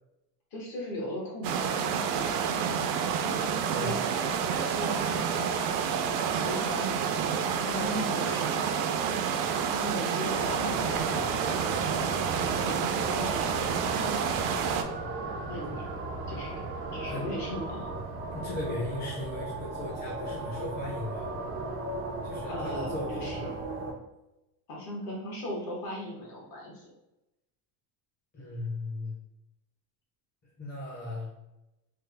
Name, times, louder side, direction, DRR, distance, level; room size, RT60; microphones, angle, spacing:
voice 1, 0.5-1.9 2.1-2.7 3.7-4.1 4.7-5.2 6.3-8.6 9.6-14.3 15.0-15.9 16.3-16.6 16.9-17.9 22.5-23.5 24.7-26.8, left 1 dB, 45° left, -2 dB, 1.1 m, -38 dB
sound 1, 1.4-14.8, right 7 dB, 80° right, 0.6 m, -29 dB
voice 2, 3.6-4.0 17.1-17.3 18.3-21.3 22.2-23.4 28.3-29.1 30.6-31.3, left 1 dB, 20° left, -6 dB, 0.7 m, -37 dB
sound 2, 10.3-23.9, right 2 dB, 30° right, 0.4 m, -37 dB
3.3 x 2.0 x 3.3 m, 0.94 s
cardioid pair, 150°, 48 cm